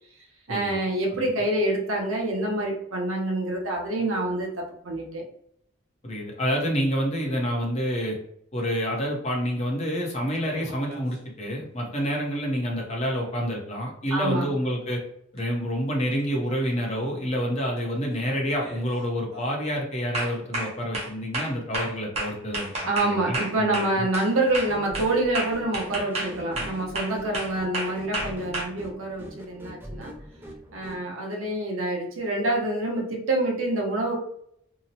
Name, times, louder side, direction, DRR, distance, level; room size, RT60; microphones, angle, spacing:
voice 1, 0.5-5.3 14.1-14.5 22.9-30.1 30.7-34.2, right 2 dB, 85° right, 0 dB, 0.7 m, -27 dB
voice 2, 6.0-8.2 8.5-15.0 15.3-24.0, equal, 30° left, -1 dB, 0.6 m, -28 dB
sound 1, 10.4-11.1 15.4-15.5 17.0-17.3 17.7-18.1 18.5-18.9 19.3-19.5 20.1-24.3 24.5-28.6, right 1 dB, 30° right, 0.7 m, -32 dB
sound 2, 24.5-31.0, equal, 10° right, 0.3 m, -42 dB
2.8 x 2.0 x 2.6 m, 0.69 s
head